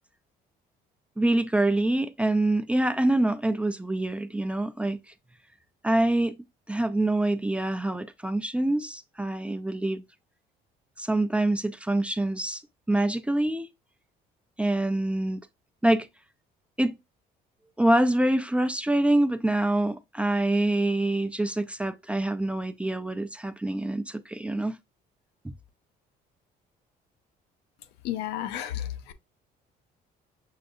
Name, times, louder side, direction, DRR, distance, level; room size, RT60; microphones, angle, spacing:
voice 1, 1.2-5.0 5.8-6.4 6.7-10.0 11.0-12.6 12.9-13.7 14.6-15.4 15.8-16.1 16.8-17.0 17.8-24.8 25.4-25.5, right 1 dB, 5° right, 0.3 m, -25 dB
voice 2, 28.0-29.1, left 11 dB, 90° left, 0.6 m, -32 dB
6.4 x 2.6 x 2.5 m
cardioid pair, 110°, 17 cm